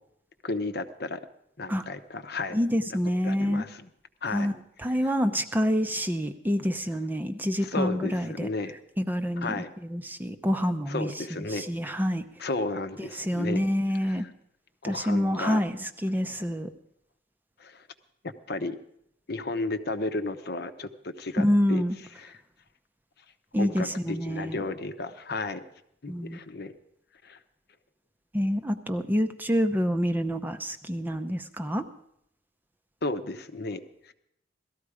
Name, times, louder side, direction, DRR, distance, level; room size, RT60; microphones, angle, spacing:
voice 1, 0.4-1.2 1.6-2.6 2.9-3.0 3.2-3.9 4.2-4.5 5.0-5.1 7.6-8.7 9.4-9.7 10.9-11.6 11.9-12.0 12.4-13.6 14.0-14.3 14.8-15.6 17.6-17.9 18.2-18.8 19.3-21.8 22.2-22.4 23.6-25.6 26.0-26.7 27.2-27.4 33.0-34.1, left 2 dB, 55° left, 9 dB, 0.9 m, -33 dB
voice 2, 2.5-3.6 4.3-4.5 4.8-8.5 9.0-9.6 9.8-11.1 11.5-12.2 13.0-14.3 14.8-16.7 21.4-22.0 23.5-24.6 26.1-26.4 28.3-31.8, equal, 10° right, 7 dB, 0.6 m, -27 dB
17.5 x 13.5 x 4.9 m, 0.74 s
head